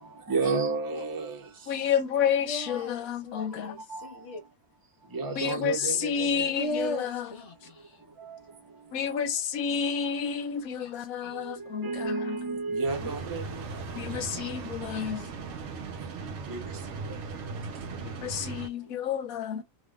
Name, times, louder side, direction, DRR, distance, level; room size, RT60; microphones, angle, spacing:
voice 1, 0.3-1.4 3.9-4.1 5.1-6.7 8.3-8.4 11.3-13.7 16.5-16.6 19.5-19.6, right 4 dB, 20° right, 0.7 m, -31 dB
voice 2, 1.7-3.8 5.4-7.3 8.9-12.4 13.0-13.1 14.0-15.3 18.0-19.6, left 8 dB, 80° left, 1.1 m, -30 dB
voice 3, 2.4-4.4 6.5-8.0 10.8-10.9 11.2-11.4 14.9-15.3, left 1 dB, 55° left, 1.3 m, -37 dB
sound 1, 12.9-18.7, right 4 dB, 60° right, 0.8 m, -38 dB
3.4 x 2.5 x 2.4 m
omnidirectional pair, 1.5 m